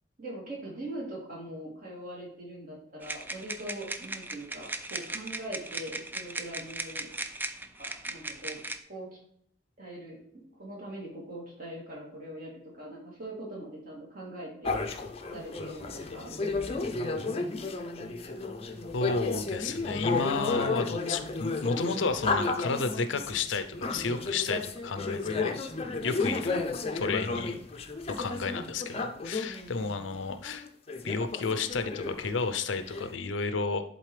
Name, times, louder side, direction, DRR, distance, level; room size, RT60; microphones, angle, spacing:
voice 1, 0.2-7.1 7.8-8.6 8.9-9.2 9.8-14.7 15.3-16.3 29.4-30.1, right 1 dB, 50° right, -4 dB, 2.7 m, -42 dB
sound 1, 3.0-8.8, right 2 dB, 10° right, 0.4 m, -38 dB
sound 2, 14.6-29.6 30.1-30.2 30.4-33.1, left 3 dB, 35° left, 0.6 m, -33 dB
voice 2, 18.9-25.6 26.0-26.6 26.9-27.6 28.1-30.7 31.0-33.8, left 4 dB, 80° left, 10 dB, 0.6 m, -32 dB
10.5 x 4.0 x 3.3 m, 0.70 s
head